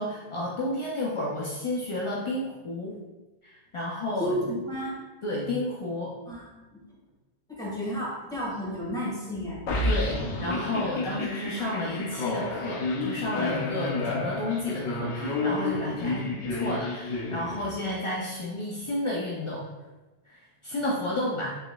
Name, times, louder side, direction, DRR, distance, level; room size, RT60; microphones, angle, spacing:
voice 1, 0.0-3.0 3.4-4.4 5.2-6.2 9.8-10.2 10.4-19.7 20.3-21.5, left 1 dB, 50° left, -4 dB, 0.3 m, -31 dB
voice 2, 4.2-4.9 6.3-6.8 7.5-9.6 16.0-16.1 16.4-16.5, equal, 5° left, -7 dB, 1.4 m, -32 dB
sound 1, 9.7-18.0, left 2 dB, 90° left, 0.9 m, -30 dB
5.4 x 3.0 x 2.2 m, 1.1 s
omnidirectional pair, 1.1 m